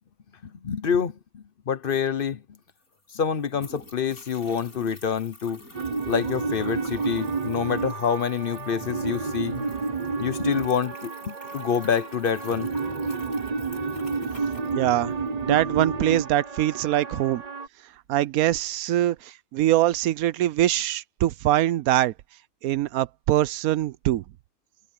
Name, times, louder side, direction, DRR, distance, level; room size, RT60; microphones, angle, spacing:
voice 1, 0.4-2.4 3.1-5.6 6.1-9.7 10.2-12.7, left 7 dB, 45° left, 0.8 m, -27 dB
sound 1, 2.6-15.4, left 1 dB, 90° left, 7.5 m, -49 dB
sound 2, 5.7-17.7, right 4 dB, 30° right, 0.9 m, -30 dB
voice 2, 14.7-17.4 18.1-22.1 22.6-24.2, right 13 dB, 85° right, 1.1 m, -23 dB
omnidirectional pair, 1.5 m